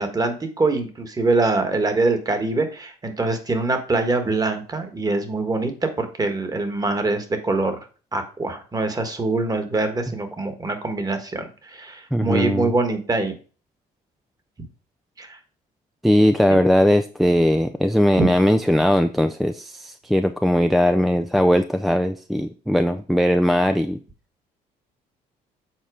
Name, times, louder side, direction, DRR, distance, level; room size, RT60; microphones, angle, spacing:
voice 1, 0.0-7.8 8.1-13.4 15.2-15.4 18.2-18.3, right 3 dB, 20° right, 7 dB, 1.5 m, -24 dB
voice 2, 12.1-12.7 16.0-24.0, equal, ahead, 8 dB, 0.4 m, -19 dB
7.5 x 4.3 x 4.9 m, 0.37 s
cardioid pair, 110°, 17 cm